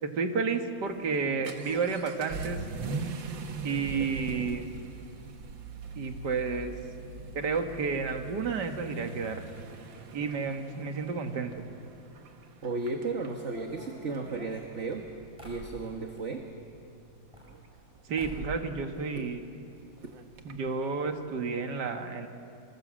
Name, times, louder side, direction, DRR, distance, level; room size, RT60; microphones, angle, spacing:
voice 1, 0.0-2.6 3.6-4.7 6.0-6.7 7.3-9.4 10.1-11.5 18.1-19.4 20.4-22.3, right 5 dB, 65° right, 5 dB, 2.3 m, -31 dB
Vehicle / Accelerating revving vroom, 0.9-20.7, right 3 dB, 80° right, 2.2 m, -42 dB
voice 2, 12.6-15.1 15.4-16.4 19.2-19.3, right 3 dB, 40° right, 3 dB, 1.7 m, -34 dB
sound 1, 13.3-16.3 17.1-17.9 18.2-18.6 18.9-19.7 20.0-20.1 20.3-20.4 21.1-21.2 21.5-21.7, right 2 dB, 15° right, 5.9 m, -48 dB
27.5 x 25.0 x 7.6 m, 2.6 s
omnidirectional pair, 2.0 m